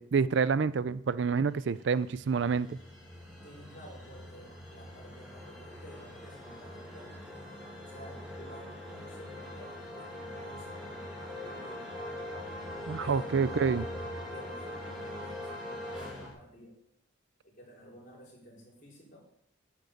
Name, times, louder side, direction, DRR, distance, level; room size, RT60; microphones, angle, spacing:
voice 1, 0.0-2.8 12.9-13.8, right 5 dB, 65° right, 17 dB, 0.4 m, -28 dB
sound 1, 1.6-16.3, left 1 dB, 5° right, 4.9 m, -42 dB
voice 2, 3.4-7.3 7.8-11.9 13.0-13.9 14.3-16.8 17.4-19.2, equal, 40° left, -4 dB, 4.3 m, -52 dB
9.9 x 6.6 x 8.0 m, 0.72 s
head